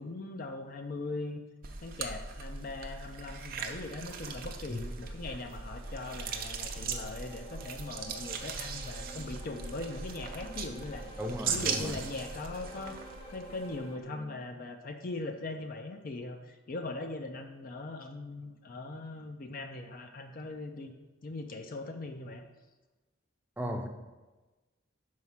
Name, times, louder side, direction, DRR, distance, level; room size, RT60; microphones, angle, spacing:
voice 1, 0.0-1.4 1.8-11.1 11.5-13.0 13.3-20.9 21.2-22.4, left 2 dB, 50° left, 0.5 m, -40 dB
sound 1, 1.6-13.8, right 5 dB, 50° right, 0.6 m, -39 dB
sound 2, 4.0-14.0, right 1 dB, 30° left, 0.9 m, -52 dB
sound 3, 7.9-14.4, right 1 dB, 80° left, 2.3 m, -54 dB
voice 2, 11.2-12.0 23.6-23.9, equal, 10° right, 0.6 m, -35 dB
5.7 x 4.7 x 5.6 m
head